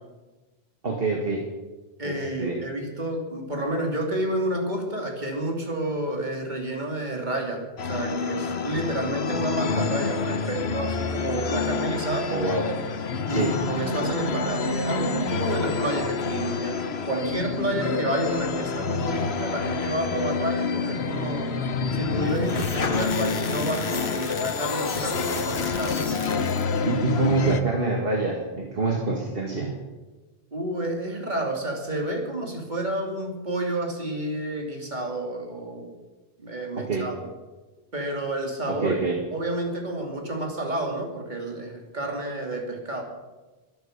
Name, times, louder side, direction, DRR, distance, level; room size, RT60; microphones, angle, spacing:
voice 1, 0.8-1.4 2.0-2.6 12.3-12.7 13.3-13.6 26.9-29.8 36.8-37.1 38.7-39.2, right 3 dB, 65° right, 0 dB, 2.0 m, -26 dB
voice 2, 2.0-12.3 13.3-21.5 21.9-26.0 30.5-35.9 36.4-37.2 37.9-39.0 39.3-43.0, right 1 dB, 45° right, 1 dB, 3.0 m, -30 dB
sound 1, 7.8-27.6, left 5 dB, 85° left, 1.3 m, -28 dB
sound 2, 22.3-26.8, left 4 dB, 60° left, 1.4 m, -33 dB
22.0 x 9.2 x 6.7 m, 1.2 s
omnidirectional pair, 1.0 m